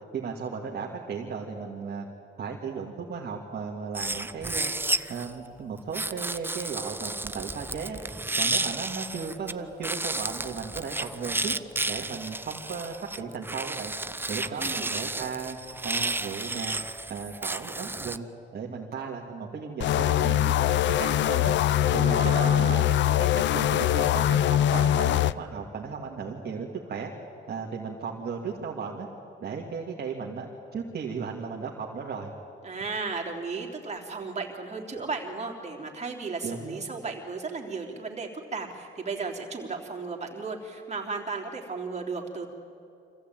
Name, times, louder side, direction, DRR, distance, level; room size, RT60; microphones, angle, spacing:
voice 1, 0.1-2.1 2.4-4.7 5.1-8.0 8.3-11.6 11.9-13.9 14.3-15.6 15.8-16.8 17.1-18.3 18.5-21.5 21.9-27.1 27.5-29.1 29.4-32.3 36.4-36.8, right 5 dB, 55° right, -1 dB, 2.2 m, -35 dB
sound 1, 3.9-5.3 5.9-9.5 9.8-18.2, right 2 dB, 10° right, 0.6 m, -32 dB
voice 2, 14.3-14.9 22.0-23.0 32.6-42.5, right 4 dB, 35° right, 1 dB, 3.5 m, -35 dB
sound 2, 19.8-25.3, left 11 dB, 65° left, 0.5 m, -23 dB
25.0 x 15.5 x 9.1 m, 2.7 s
cardioid pair, 90°, 20 cm